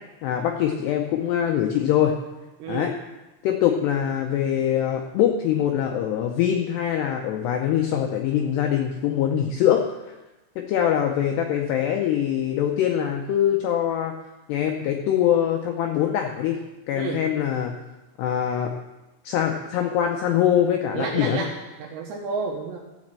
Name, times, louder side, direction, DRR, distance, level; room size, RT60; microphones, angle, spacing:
voice 1, 0.2-2.1 2.7-2.9 3.4-9.8 10.1-10.2 10.6-14.1 14.5-16.6 16.9-17.7 18.2-18.7 19.3-21.4, left 10 dB, 85° left, 3 dB, 2.4 m, -23 dB
voice 2, 2.6-2.9 17.0-17.2 20.9-21.5 21.8-22.8, right 5 dB, 75° right, -1 dB, 2.9 m, -30 dB
15.0 x 5.3 x 7.5 m, 1.1 s
omnidirectional pair, 5.7 m